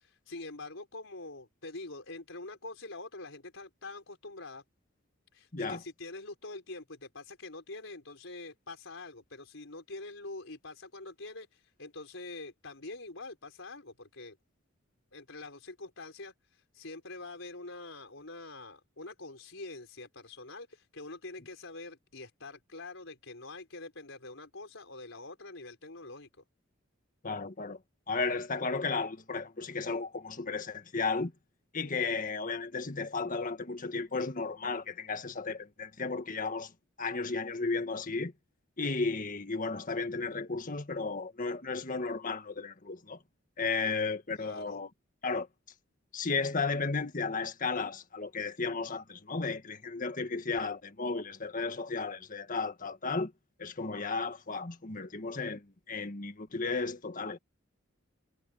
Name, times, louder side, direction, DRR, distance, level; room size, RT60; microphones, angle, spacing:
voice 1, 0.0-4.6 5.3-14.4 15.1-26.3 43.8-43.9 44.4-44.8, left 2 dB, 70° left, 4.8 m, -45 dB
voice 2, 27.2-27.8 28.1-31.3 31.7-36.7 37.0-38.3 38.8-43.2 43.6-44.9 45.2-45.5 46.1-53.3 53.6-57.4, left 4 dB, 40° left, 1.7 m, -34 dB
head